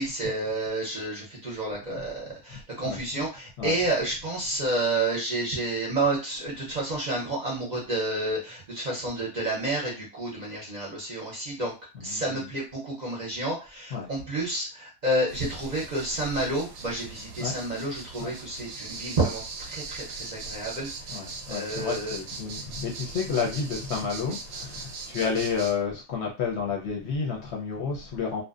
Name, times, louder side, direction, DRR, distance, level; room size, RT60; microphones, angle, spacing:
voice 1, 0.0-11.7 12.0-22.2, right 2 dB, 40° right, -3 dB, 0.7 m, -30 dB
voice 2, 11.9-12.5 13.9-14.1 17.4-17.5 18.2-18.3 21.1-28.4, left 5 dB, 60° left, -1 dB, 0.8 m, -31 dB
sound 1, 15.3-25.7, right 4 dB, 85° right, 1.0 m, -40 dB
2.6 x 2.1 x 2.4 m, 0.29 s
omnidirectional pair, 1.4 m